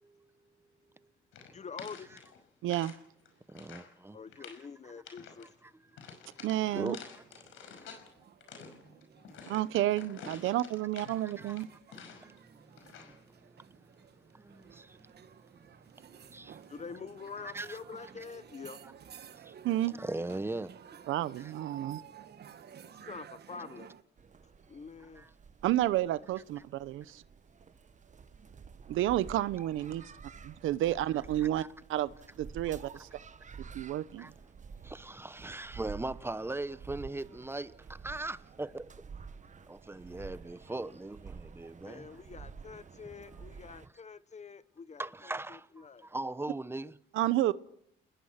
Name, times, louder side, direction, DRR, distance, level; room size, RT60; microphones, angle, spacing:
sound 1, 1.3-3.0 3.3-3.9 4.3-4.7 5.0-5.5 6.0-8.1 8.4-12.4 12.8-13.2, left 6 dB, 85° left, 5.6 m, -50 dB
voice 1, 1.5-2.2 4.1-5.5 8.0-8.2 9.2-9.3 16.7-18.8 23.0-23.9 24.7-25.3 41.8-46.1, left 5 dB, 35° left, 1.3 m, -46 dB
voice 2, 2.6-3.0 6.4-7.0 9.5-11.7 19.6-19.9 21.1-22.0 25.6-27.2 28.9-30.0 30.4-32.1 32.4-33.1 33.7-34.3 47.1-47.5, right 14 dB, 85° right, 0.9 m, -30 dB
voice 3, 3.5-4.2 5.9-6.5 6.7-7.0 11.1-11.6 12.2-13.9 14.3-15.1 16.0-16.6 17.5-17.8 19.4-19.5 20.0-20.7 21.4-21.5 25.2-25.3 31.6-31.7 34.2-34.3 34.8-38.9 39.7-42.1 45.0-47.0, right 2 dB, 10° right, 1.0 m, -40 dB
sound 2, 6.4-24.0, right 8 dB, 55° right, 1.4 m, -54 dB
sound 3, 24.2-43.9, right 5 dB, 40° right, 1.3 m, -50 dB
29.5 x 20.5 x 5.9 m
cardioid pair, 90°, 20 cm